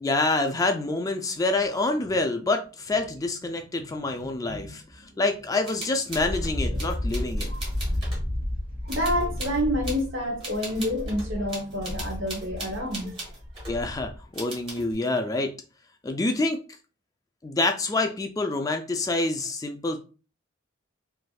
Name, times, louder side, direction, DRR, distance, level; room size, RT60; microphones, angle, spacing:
voice 1, 0.0-4.8 5.2-7.5 13.7-15.5 16.0-16.6 17.4-20.0, left 2 dB, 20° left, 0.3 m, -27 dB
voice 2, 4.5-5.0 6.8-7.2 7.5-7.6 8.8-13.3, equal, 75° right, 0.9 m, -29 dB
sound 1, 5.7-8.2 8.9-10.0 10.4-13.8 14.3-14.9, right 2 dB, 25° right, 1.3 m, -39 dB
Wind, 6.1-14.2, left 1 dB, 50° right, 1.1 m, -32 dB
3.3 x 2.5 x 2.3 m
head